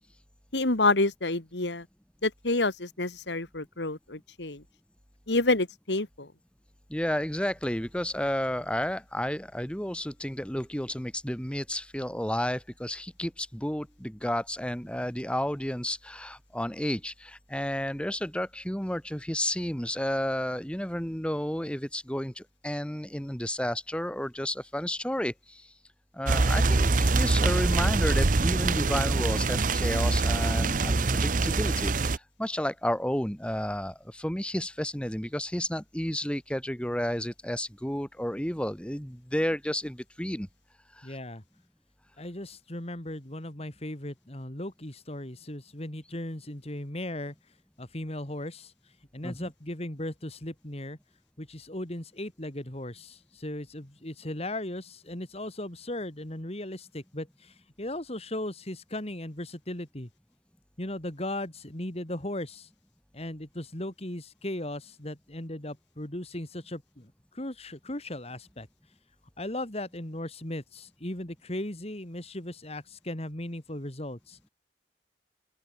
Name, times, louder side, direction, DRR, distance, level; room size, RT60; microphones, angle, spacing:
voice 1, 0.5-1.9 2.2-4.6 5.3-6.3, left 2 dB, 85° left, 2.5 m, -27 dB
voice 2, 6.9-25.7 26.1-40.5 40.9-41.2 49.2-49.5, equal, 5° left, 2.6 m, -32 dB
sound 1, 26.3-32.2, right 3 dB, 50° right, 0.8 m, -24 dB
voice 3, 41.0-41.4 42.2-47.3 47.8-48.7 49.1-51.0 51.4-60.1 60.8-62.7 63.1-68.7 69.4-74.4, left 1 dB, 35° left, 3.1 m, -37 dB
open air
head